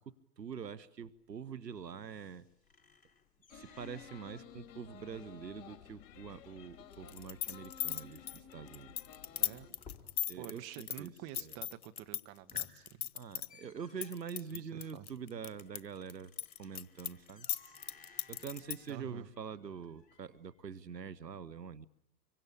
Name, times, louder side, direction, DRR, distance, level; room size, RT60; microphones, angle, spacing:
voice 1, 0.0-2.5 3.5-8.9 10.3-11.1 13.1-16.3 16.6-17.5 18.3-21.9, right 7 dB, 80° right, 19 dB, 1.3 m, -45 dB
sound 1, 1.0-10.6 10.9-11.5 11.9-12.0 12.3-20.6, left 5 dB, 15° left, 3.7 m, -61 dB
sound 2, 3.5-9.7, left 9 dB, 40° left, 3.8 m, -54 dB
sound 3, 7.1-12.2 12.5-13.5 14.0-15.8 16.1-18.9, left 11 dB, 60° left, 1.4 m, -37 dB
voice 2, 9.4-9.8 10.3-13.1 14.5-15.1 18.9-19.3, right 12 dB, 30° right, 9 dB, 1.6 m, -49 dB
25.5 x 24.0 x 8.6 m, 0.75 s
figure-of-eight pair, 110°, 49 cm